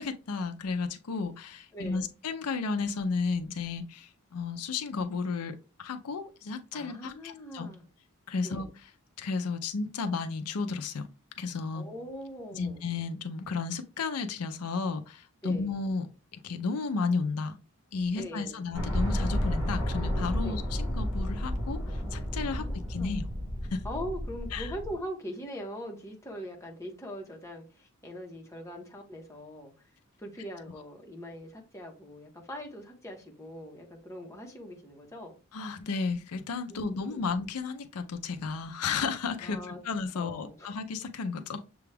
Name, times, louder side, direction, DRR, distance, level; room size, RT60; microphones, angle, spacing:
voice 1, 0.0-7.7 8.3-8.7 9.2-11.1 11.4-11.9 12.5-16.1 16.3-17.6 17.9-23.2 23.7-23.8 24.5-24.7 35.5-41.6, left 4 dB, 85° left, 0.5 m, -33 dB
voice 2, 1.7-2.0 6.7-7.9 8.4-8.7 11.7-12.8 15.4-15.7 18.2-18.7 20.4-20.6 22.4-23.2 23.8-29.9 30.2-35.3 36.7-37.3 39.4-39.8 40.1-40.8, equal, 15° left, 1.0 m, -42 dB
sound 1, 18.7-25.0, equal, 15° right, 1.7 m, -31 dB
6.8 x 2.3 x 3.3 m
head